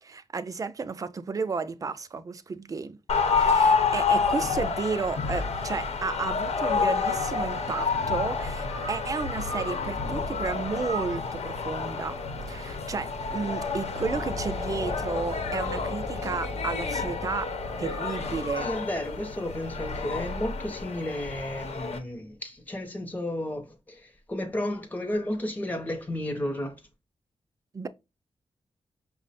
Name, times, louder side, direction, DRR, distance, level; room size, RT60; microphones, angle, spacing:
voice 1, 0.0-3.0 3.4-12.2 12.5-17.5 17.8-18.7 27.7-27.9, right 4 dB, 30° right, 0.4 m, -32 dB
sound 1, 3.1-22.0, left 4 dB, 80° left, 0.9 m, -29 dB
sound 2, 14.0-19.5, left 3 dB, 35° left, 1.0 m, -37 dB
voice 2, 18.6-26.8, left 1 dB, 15° left, 0.6 m, -33 dB
5.9 x 2.1 x 4.0 m
wide cardioid pair, 135°, 11 cm